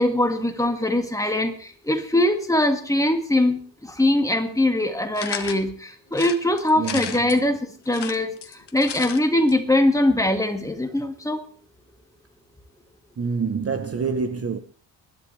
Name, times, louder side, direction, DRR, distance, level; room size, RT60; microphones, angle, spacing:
voice 1, 0.0-7.6 7.9-11.4, left 1 dB, 5° left, 1.9 m, -22 dB
sound 1, 5.1-5.6 6.1-7.4 7.8-9.2 9.5-9.6 9.8-9.9, left 9 dB, 60° left, 1.4 m, -34 dB
voice 2, 6.8-7.4 13.2-14.6, right 5 dB, 30° right, 0.9 m, -27 dB
20.5 x 12.0 x 3.3 m
wide cardioid pair, 145°, 45 cm